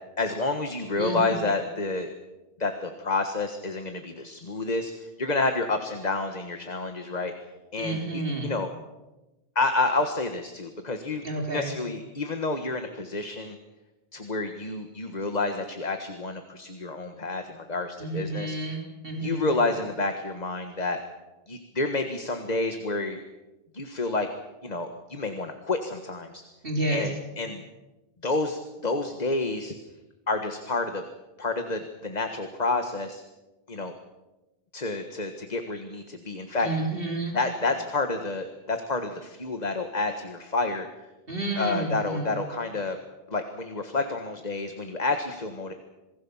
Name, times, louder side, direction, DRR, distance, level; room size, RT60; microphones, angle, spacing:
voice 1, 0.2-2.1 2.6-7.3 7.7-8.7 9.5-11.2 11.5-13.6 14.1-18.6 19.2-21.0 21.5-23.2 23.7-24.3 24.6-26.4 26.9-27.6 28.2-29.7 30.3-31.0 31.4-33.2 33.7-33.9 34.7-36.7 37.3-40.9 41.5-43.0 43.3-45.7, left 3 dB, 45° left, 6 dB, 1.7 m, -29 dB
voice 2, 1.0-1.4 7.8-8.5 11.2-11.7 18.0-19.5 26.6-27.1 36.6-37.3 41.3-42.3, right 2 dB, 65° right, 1 dB, 4.0 m, -30 dB
27.5 x 19.5 x 7.3 m, 1.1 s
omnidirectional pair, 1.0 m